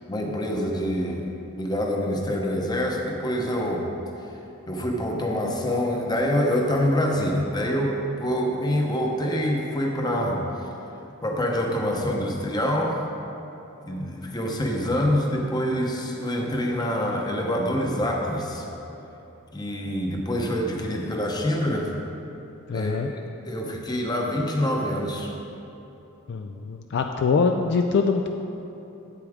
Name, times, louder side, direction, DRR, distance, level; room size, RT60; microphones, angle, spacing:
voice 1, 0.1-1.3 1.6-3.9 4.7-10.5 11.2-13.0 13.9-18.7 19.5-21.9 22.7-23.1 23.4-25.3, equal, 20° left, 0 dB, 0.8 m, -26 dB
voice 2, 22.7-23.1 26.3-28.3, left 5 dB, 50° left, 5 dB, 0.3 m, -23 dB
8.3 x 8.3 x 3.5 m, 3.0 s
head